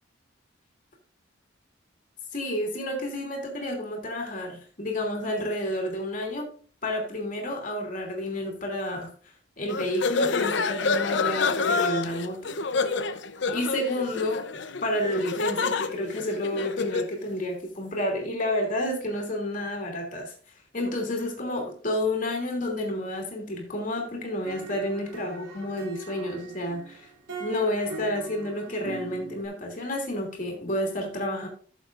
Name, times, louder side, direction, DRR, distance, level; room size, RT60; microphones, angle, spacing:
voice 1, 2.3-6.5 6.8-9.1 9.6-12.6 13.5-14.4 14.8-20.3 20.7-27.1 27.4-31.5, left 1 dB, 40° left, 1 dB, 2.9 m, -30 dB
sound 1, 9.7-17.2, left 4 dB, 65° left, 0.7 m, -28 dB
sound 2, 24.4-29.5, right 2 dB, 90° right, 3.2 m, -41 dB
13.5 x 7.2 x 2.5 m, 0.42 s
head